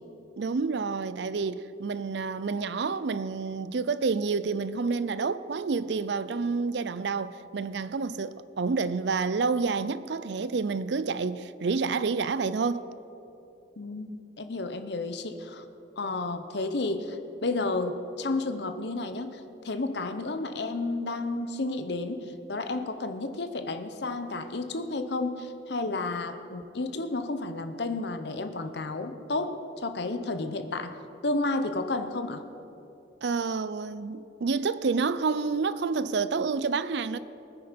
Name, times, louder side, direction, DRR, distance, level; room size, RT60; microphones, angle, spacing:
voice 1, 0.4-12.9 33.2-37.2, right 4 dB, 65° right, 0.5 m, -29 dB
voice 2, 13.8-15.7 16.0-31.0 31.2-32.4, left 2 dB, 60° left, 0.8 m, -32 dB
20.5 x 9.6 x 5.2 m
head